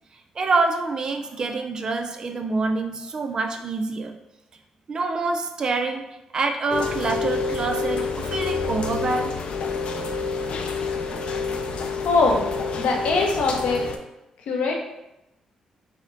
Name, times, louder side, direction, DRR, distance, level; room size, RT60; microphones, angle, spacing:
voice 1, 0.4-4.1 4.9-6.0 6.3-9.3, right 3 dB, 40° right, 5 dB, 0.5 m, -26 dB
Rain, 6.7-14.0, left 4 dB, 60° left, 0.4 m, -28 dB
voice 2, 12.0-12.4 12.8-13.9 14.5-14.7, left 3 dB, 85° left, 0 dB, 0.8 m, -21 dB
4.9 x 2.2 x 3.9 m, 0.90 s
cardioid pair, 115°, 2 cm